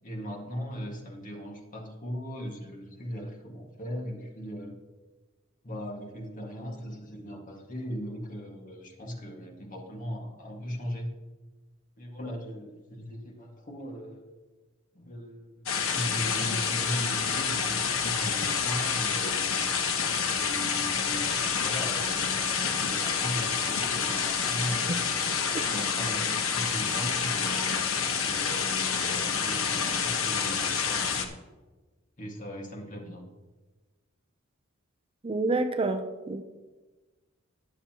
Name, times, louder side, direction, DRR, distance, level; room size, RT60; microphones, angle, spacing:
voice 1, 0.0-4.8 5.6-11.1 12.0-14.2 14.9-19.4 20.3-24.9 25.7-27.8 28.2-31.2 32.2-33.3, equal, 40° left, 1 dB, 1.8 m, -38 dB
sound 1, 15.7-31.3, left 6 dB, 80° left, 1.1 m, -28 dB
voice 2, 35.2-36.4, right 2 dB, 25° right, 6 dB, 0.6 m, -28 dB
20.0 x 7.0 x 3.0 m, 1.2 s
head